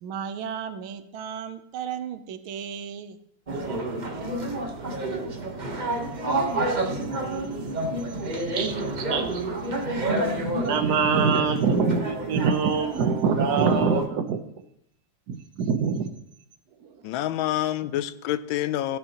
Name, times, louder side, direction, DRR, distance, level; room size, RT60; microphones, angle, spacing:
voice 1, 0.0-3.2 4.1-4.3, right 8 dB, 85° right, 10 dB, 1.6 m, -35 dB
sound 1, 3.5-14.1, right 2 dB, 30° right, 0.9 m, -29 dB
voice 2, 8.3-9.4 10.4-14.4 15.3-16.1 16.8-16.9, right 5 dB, 60° right, 7 dB, 1.3 m, -24 dB
voice 3, 17.0-19.0, left 13 dB, 80° left, 14 dB, 1.3 m, -27 dB
16.5 x 8.1 x 2.9 m, 0.75 s
omnidirectional pair, 2.2 m